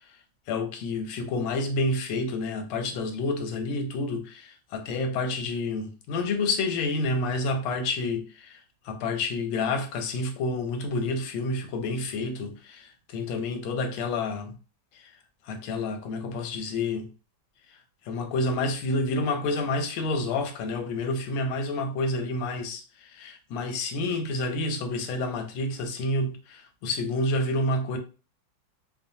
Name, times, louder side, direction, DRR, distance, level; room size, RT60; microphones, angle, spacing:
voice 1, 0.5-14.5 14.9-15.1 15.4-17.1 18.1-28.0, left 2 dB, 85° left, 1.4 m, -29 dB
3.2 x 2.0 x 2.6 m
omnidirectional pair, 2.1 m